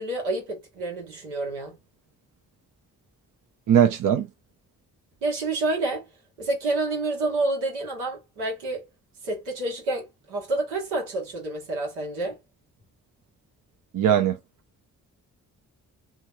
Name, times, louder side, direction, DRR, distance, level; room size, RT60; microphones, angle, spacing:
voice 1, 0.0-1.8 5.2-6.1 6.4-8.9 9.2-12.4, right 2 dB, 90° right, 1.4 m, -28 dB
voice 2, 3.7-4.3 13.9-14.4, right 9 dB, 55° right, 0.7 m, -19 dB
2.9 x 2.3 x 2.6 m
hypercardioid pair, 45°, 39 cm